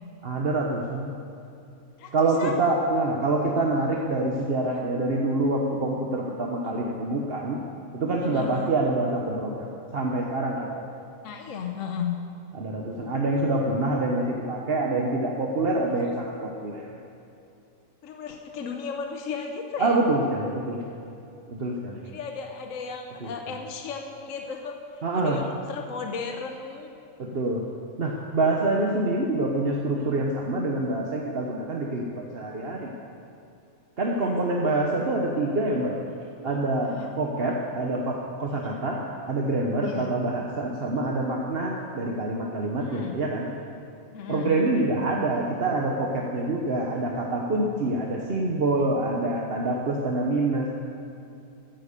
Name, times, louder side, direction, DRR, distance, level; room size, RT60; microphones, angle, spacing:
voice 1, 0.2-1.1 2.1-7.6 7.9-9.7 9.9-10.8 12.5-16.9 19.8-21.0 21.5-22.0 23.2-23.3 25.0-25.4 27.2-27.6 28.0-32.9 34.0-36.0 36.4-39.0 39.3-43.5 44.3-50.7, right 2 dB, 45° right, -1 dB, 1.2 m, -26 dB
voice 2, 8.2-8.7 11.2-12.2 16.0-16.1 18.0-20.0 22.0-26.9 34.1-34.3 36.8-37.1 38.6-38.8 39.8-40.1 42.8-43.1 44.1-44.6, left 6 dB, 65° left, 3 dB, 1.2 m, -35 dB
14.0 x 10.0 x 6.9 m, 2.7 s
omnidirectional pair, 1.5 m